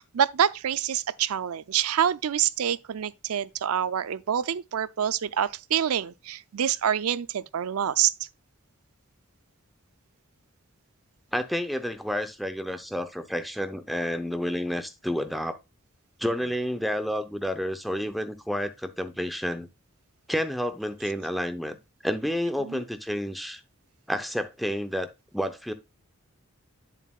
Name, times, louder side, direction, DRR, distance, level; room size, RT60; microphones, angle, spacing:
voice 1, 0.0-8.1 22.6-22.8, right 9 dB, 85° right, 0.5 m, -26 dB
voice 2, 11.3-15.6 16.2-19.7 20.3-21.8 22.0-23.6 24.1-25.7, equal, ahead, 0.7 m, -30 dB
8.3 x 7.4 x 2.3 m
head